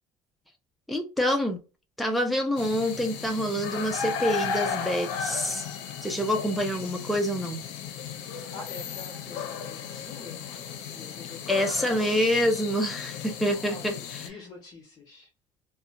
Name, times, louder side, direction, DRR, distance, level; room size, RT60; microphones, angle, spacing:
voice 1, 0.9-1.6 2.0-5.7 6.0-7.6 11.5-13.9, equal, ahead, 0.4 m, -26 dB
sound 1, 2.6-14.3, left 7 dB, 85° left, 0.5 m, -35 dB
voice 2, 8.5-10.5 10.9-12.3 13.4-15.3, left 4 dB, 35° left, 0.9 m, -46 dB
2.7 x 2.1 x 2.5 m
cardioid pair, 150°, 10 cm